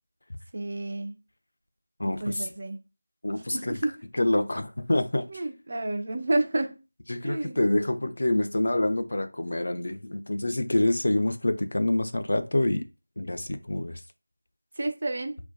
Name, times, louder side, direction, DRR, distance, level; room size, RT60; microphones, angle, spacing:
voice 1, 0.5-1.1 2.0-2.8 3.5-3.9 5.3-6.8 7.2-7.6 14.8-15.4, right 2 dB, 40° right, 0.5 m, -30 dB
voice 2, 2.0-2.5 3.2-3.8 4.1-5.3 7.1-12.8 13.2-14.0, left 1 dB, 60° left, 0.4 m, -26 dB
2.5 x 2.1 x 2.2 m
figure-of-eight pair, 170°, 0 cm